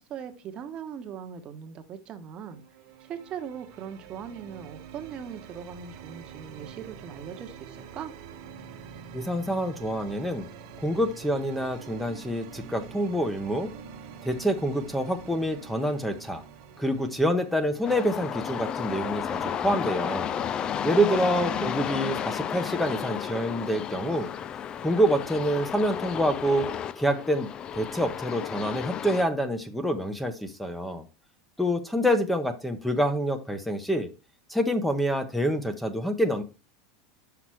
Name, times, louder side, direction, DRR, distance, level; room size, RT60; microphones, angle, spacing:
voice 1, 0.0-2.6 3.0-8.1 21.2-21.7, right 7 dB, 35° right, 7 dB, 1.1 m, -40 dB
sound 1, 2.5-20.3, right 7 dB, 60° right, 1.2 m, -46 dB
voice 2, 9.1-10.5 10.8-13.7 14.2-16.4 16.8-20.3 20.8-24.3 24.8-26.7 27.0-31.0 31.6-34.1 34.5-36.4, equal, 5° left, 8 dB, 0.8 m, -27 dB
sound 2, 17.8-29.2, left 8 dB, 30° left, 0.3 m, -32 dB
5.8 x 5.8 x 4.7 m, 0.30 s
supercardioid pair, 130°, 3 cm